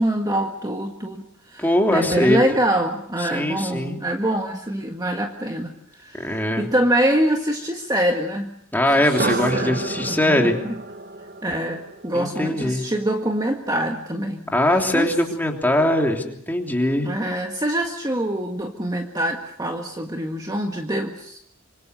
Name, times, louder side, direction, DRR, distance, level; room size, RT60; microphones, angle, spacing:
voice 1, 0.0-8.5 9.0-10.7 11.4-14.4 14.9-15.1 17.0-21.4, right 1 dB, 15° right, 3 dB, 1.7 m, -25 dB
voice 2, 1.6-2.4 3.3-4.0 6.2-6.7 8.7-10.6 12.1-12.8 14.5-17.1, left 1 dB, 10° left, 2 dB, 3.2 m, -21 dB
sound 1, 9.0-13.0, right 3 dB, 45° right, 1.0 m, -30 dB
26.0 x 26.0 x 6.7 m, 0.65 s
head